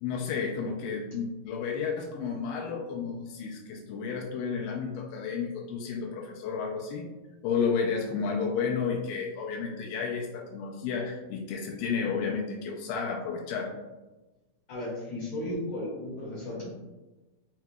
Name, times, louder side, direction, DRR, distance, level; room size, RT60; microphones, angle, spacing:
voice 1, 0.0-7.1 7.4-13.7, left 5 dB, 85° left, -1 dB, 2.0 m, -32 dB
voice 2, 14.7-16.7, left 1 dB, 70° left, -7 dB, 1.8 m, -35 dB
5.8 x 2.8 x 2.3 m, 1.1 s
omnidirectional pair, 4.5 m